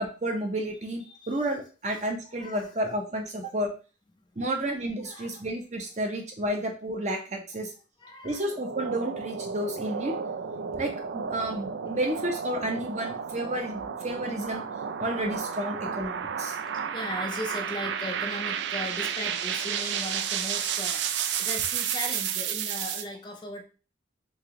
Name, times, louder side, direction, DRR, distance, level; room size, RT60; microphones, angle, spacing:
voice 1, 0.0-3.7 4.4-7.7 8.2-10.1 10.7-14.6 15.0-16.6, right 1 dB, 35° right, 3 dB, 0.7 m, -31 dB
voice 2, 1.1-1.4 2.3-2.7 4.4-4.5 5.0-5.4 8.0-8.4 16.9-23.7, left 1 dB, 25° left, 3 dB, 0.4 m, -38 dB
sound 1, 8.4-23.1, right 8 dB, 65° right, 0.3 m, -32 dB
3.2 x 2.9 x 3.6 m, 0.35 s
head